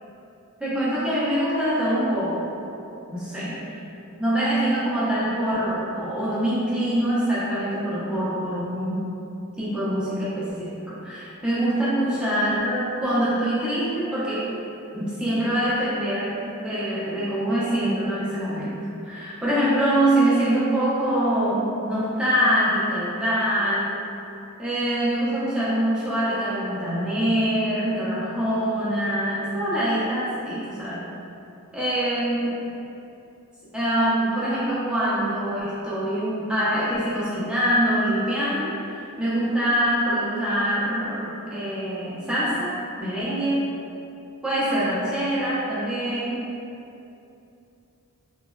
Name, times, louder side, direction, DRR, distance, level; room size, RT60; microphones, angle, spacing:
voice 1, 0.6-2.5 3.1-3.5 4.2-9.1 9.6-14.5 14.9-18.8 19.0-23.9 24.6-31.1 31.7-32.4 33.7-43.7 44.4-46.5, right 1 dB, 5° right, -12 dB, 0.8 m, -24 dB
3.2 x 2.4 x 2.2 m, 2.7 s
head